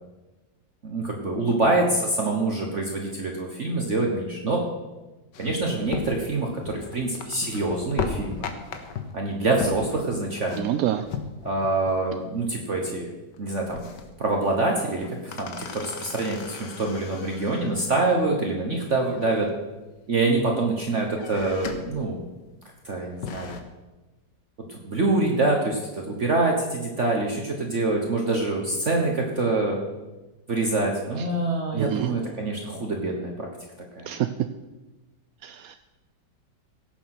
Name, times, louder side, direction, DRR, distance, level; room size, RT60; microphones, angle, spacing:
voice 1, 0.8-4.6 5.4-8.5 9.1-10.7 11.4-13.1 13.4-13.9 14.2-19.5 20.1-22.2 22.8-23.6 24.7-29.8 30.5-33.5 34.0-34.1, right 2 dB, 45° right, 1 dB, 1.4 m, -25 dB
sound 1, 5.3-12.0 12.3-12.4 12.7-13.0 13.3-14.3 14.7-17.9 19.0-19.9 20.4-20.8 21.1-22.0 22.4-22.5 22.9-23.6, left 6 dB, 75° left, 1.7 m, -36 dB
voice 2, 10.5-11.0 31.7-32.1 34.1-34.3 35.4-35.8, right 12 dB, 70° right, 9 dB, 0.8 m, -26 dB
16.5 x 7.0 x 5.9 m, 1.1 s
omnidirectional pair, 1.9 m